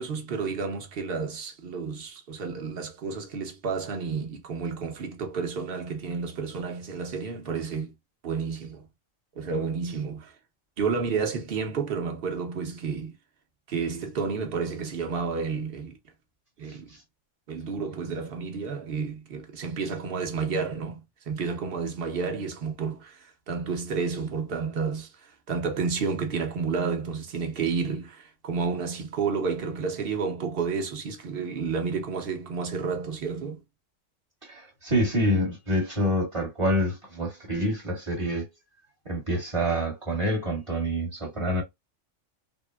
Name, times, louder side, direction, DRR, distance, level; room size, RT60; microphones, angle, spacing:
voice 1, 0.0-7.9 8.2-8.9 9.4-10.3 10.8-13.1 13.7-16.0 16.6-16.9 17.5-21.0 21.3-33.6, right 5 dB, 50° right, 1.0 m, -31 dB
voice 2, 34.4-38.5 39.0-41.6, equal, 25° right, 1.2 m, -27 dB
3.5 x 2.1 x 2.2 m
omnidirectional pair, 1.3 m